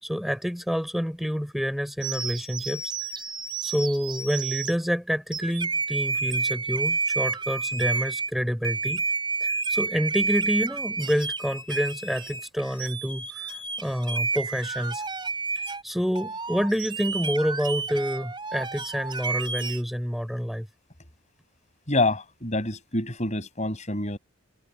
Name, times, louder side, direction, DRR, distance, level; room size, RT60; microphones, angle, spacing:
voice 1, 0.0-2.8 3.6-9.0 9.4-15.0 15.8-20.7, equal, ahead, 4.9 m, -28 dB
sound 1, 2.0-4.8 5.3-8.3 8.6-15.8 16.2-19.8, right 4 dB, 20° right, 3.8 m, -30 dB
voice 2, 21.9-24.2, left 2 dB, 30° left, 6.8 m, -27 dB
head